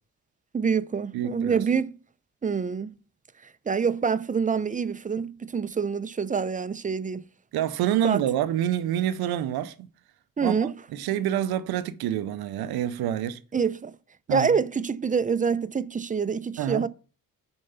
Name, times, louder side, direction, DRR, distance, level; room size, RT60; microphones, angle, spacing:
voice 1, 0.5-2.0 2.4-2.9 3.7-7.2 8.0-8.2 10.4-10.7 13.5-13.9 14.3-16.9, right 6 dB, 20° right, 0.6 m, -26 dB
voice 2, 1.1-1.6 7.5-9.7 10.4-13.4 14.3-14.5 16.6-16.8, right 11 dB, 80° right, 0.7 m, -27 dB
6.6 x 4.5 x 5.5 m
supercardioid pair, 60°, 36 cm